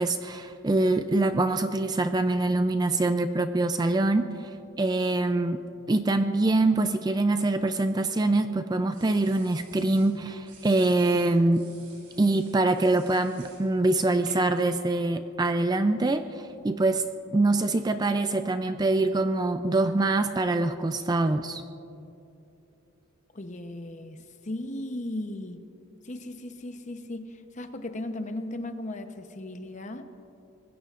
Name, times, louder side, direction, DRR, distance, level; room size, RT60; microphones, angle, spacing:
voice 1, 0.0-4.3 4.8-5.6 5.9-11.7 12.2-17.0 17.3-21.6, right 2 dB, 20° right, 9 dB, 0.3 m, -24 dB
sound 1, 7.4-8.3 8.9-10.1 10.5-13.7 14.3-14.6, right 4 dB, 65° right, 4.5 m, -53 dB
voice 2, 23.3-25.6 26.0-30.0, left 1 dB, 35° left, 7 dB, 0.8 m, -36 dB
24.5 x 20.0 x 2.5 m, 2.8 s
head